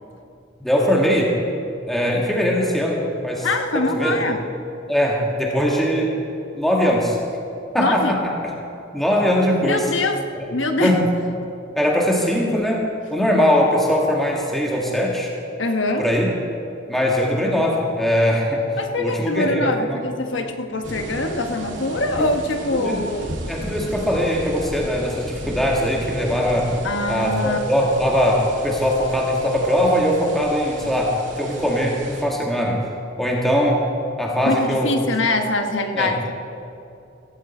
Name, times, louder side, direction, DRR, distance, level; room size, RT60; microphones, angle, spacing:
voice 1, 0.6-1.4 1.9-3.5 3.7-4.4 4.9-6.2 6.5-7.2 7.7-8.5 8.9-9.9 10.3-10.5 10.8-11.1 11.8-15.3 16.0-16.3 16.9-18.6 19.0-20.0 22.2-22.3 22.7-23.0 23.5-26.7 27.1-32.8 33.2-33.8 34.2-34.9 36.0-36.2, equal, ahead, -2 dB, 1.7 m, -21 dB
voice 2, 3.4-4.4 7.8-8.2 9.6-10.2 10.5-11.0 15.6-16.0 18.8-23.3 26.8-27.6 34.4-36.3, left 2 dB, 75° left, 6 dB, 1.2 m, -23 dB
sound 1, 20.8-32.2, right 1 dB, 75° right, 2.6 m, -34 dB
16.0 x 15.5 x 4.4 m, 2.6 s
head